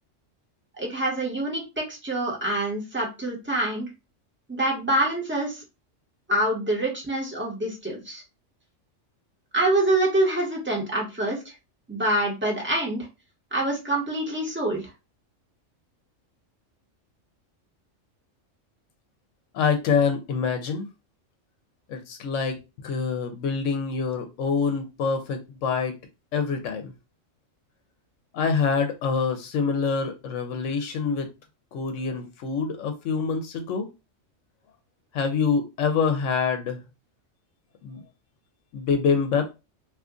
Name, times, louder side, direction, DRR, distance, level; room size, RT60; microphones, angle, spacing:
voice 1, 0.8-3.9 4.5-5.6 6.3-8.2 9.5-11.5 11.9-13.1 13.5-14.8, right 1 dB, 10° right, 1.0 m, -26 dB
voice 2, 19.5-20.9 21.9-25.9 26.3-26.9 28.3-31.3 31.7-33.9 35.1-36.8 37.8-38.0 38.7-39.5, left 5 dB, 75° left, 1.0 m, -26 dB
2.8 x 2.4 x 3.6 m
omnidirectional pair, 1.3 m